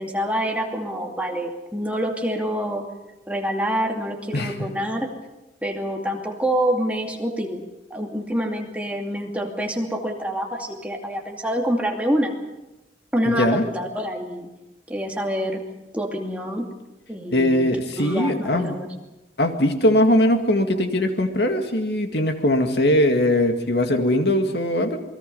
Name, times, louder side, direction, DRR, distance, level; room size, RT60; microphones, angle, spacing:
voice 1, 0.0-2.8 3.3-5.1 5.6-7.6 7.9-12.3 13.1-14.5 14.9-15.6 15.9-16.7 17.1-17.7 18.0-18.9, equal, 10° right, 1 dB, 2.5 m, -26 dB
voice 2, 17.3-18.8 19.4-25.0, left 1 dB, 70° left, 5 dB, 2.2 m, -20 dB
28.0 x 21.0 x 5.5 m, 1.0 s
head